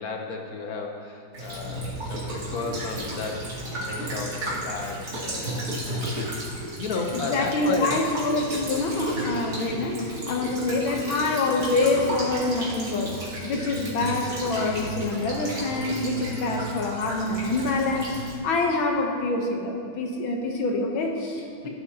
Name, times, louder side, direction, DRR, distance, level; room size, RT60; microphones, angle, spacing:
voice 1, 0.0-7.9 9.8-10.1 21.6-21.7, left 4 dB, 55° left, 2 dB, 1.2 m, -34 dB
Child speech kid speaking / Bird vocalization bird call bird song / Stream, 1.3-18.3, right 1 dB, 45° right, 2.9 m, -33 dB
voice 2, 7.1-21.7, left 3 dB, 70° left, 1 dB, 1.7 m, -26 dB
17.0 x 9.7 x 2.8 m, 2.4 s
omnidirectional pair, 2.3 m